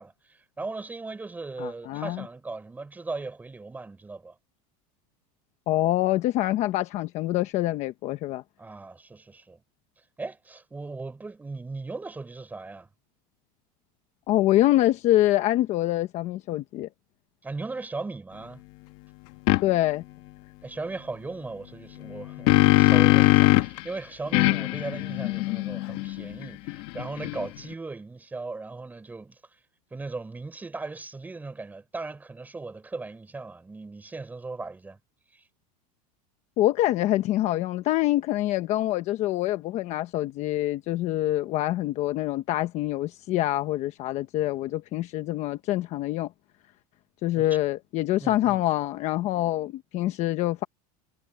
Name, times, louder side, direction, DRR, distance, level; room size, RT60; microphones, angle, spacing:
voice 1, 0.0-4.3 8.6-9.6 10.2-12.9 17.4-18.6 20.6-29.4 29.9-35.0 35.3-35.4 47.3-47.5 48.2-48.6, right 3 dB, 10° right, 4.8 m, -38 dB
voice 2, 1.6-2.2 5.7-8.4 14.3-16.9 19.6-20.0 36.6-46.3 47.2-50.6, left 15 dB, 40° left, 1.1 m, -25 dB
sound 1, 19.5-19.6 22.0-23.8 24.3-27.7, left 20 dB, 55° left, 1.9 m, -21 dB
supercardioid pair, 165°, 19 cm